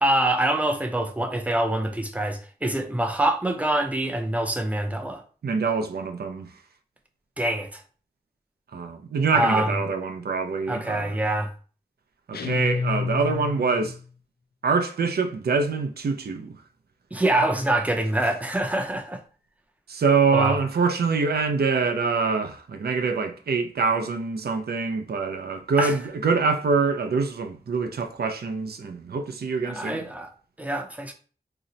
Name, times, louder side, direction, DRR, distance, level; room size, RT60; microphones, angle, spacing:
voice 1, 0.0-5.2 7.4-7.8 9.3-9.7 10.7-11.5 17.1-19.2 20.3-20.6 25.8-25.9 29.6-30.3 30.6-31.1, right 1 dB, 10° right, 0.5 m, -25 dB
voice 2, 5.4-6.5 8.7-11.2 12.3-14.0 14.6-16.6 19.9-30.0, right 4 dB, 75° right, 0.4 m, -25 dB
sound 1, 12.3-14.1, left 5 dB, 75° left, 0.4 m, -29 dB
2.8 x 2.0 x 3.8 m
wide cardioid pair, 90°, 16 cm